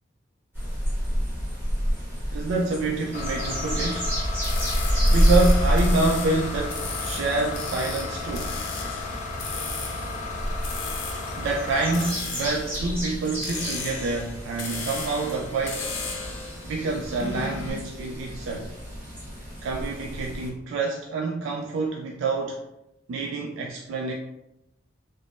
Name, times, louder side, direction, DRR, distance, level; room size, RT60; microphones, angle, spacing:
sound 1, 0.5-20.5, equal, 10° right, 1.1 m, -29 dB
voice 1, 2.3-4.1 5.1-8.5 11.4-15.9 16.7-18.7 19.6-22.6 23.1-24.1, right 3 dB, 80° right, 0.3 m, -27 dB
sound 2, 3.1-12.1, left 3 dB, 40° left, 0.4 m, -34 dB
sound 3, 4.4-17.7, left 4 dB, 85° left, 0.6 m, -36 dB
3.4 x 2.0 x 2.5 m
head